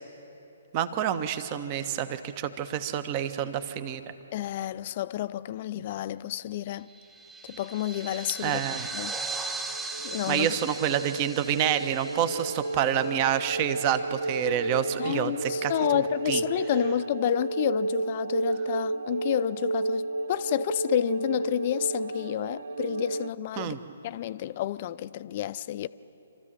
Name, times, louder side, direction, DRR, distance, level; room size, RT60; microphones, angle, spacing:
voice 1, 0.7-4.0 8.4-8.9 10.3-16.4 23.6-23.8, right 9 dB, 35° right, 1.1 m, -28 dB
voice 2, 4.3-6.9 7.4-8.6 8.9-9.1 10.0-10.5 15.0-23.8 24.0-25.9, left 12 dB, 40° left, 0.5 m, -30 dB
sound 1, 6.9-13.7, right 3 dB, 10° right, 1.2 m, -38 dB
sound 2, 9.2-23.3, right 2 dB, 65° right, 0.6 m, -32 dB
26.5 x 14.0 x 7.5 m
figure-of-eight pair, 130°, 0 cm